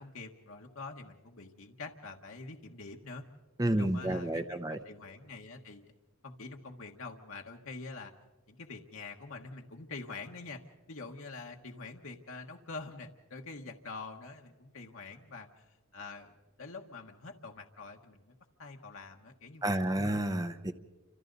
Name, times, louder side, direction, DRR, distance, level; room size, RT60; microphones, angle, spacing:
voice 1, 0.0-3.2 3.8-5.8 6.2-8.1 8.5-10.6 10.9-15.5 15.9-16.3 16.6-20.0, left 3 dB, 75° left, 2 dB, 1.4 m, -45 dB
voice 2, 3.6-4.8 19.6-20.7, right 1 dB, 20° right, 9 dB, 0.8 m, -30 dB
29.0 x 26.0 x 4.0 m, 1.2 s
head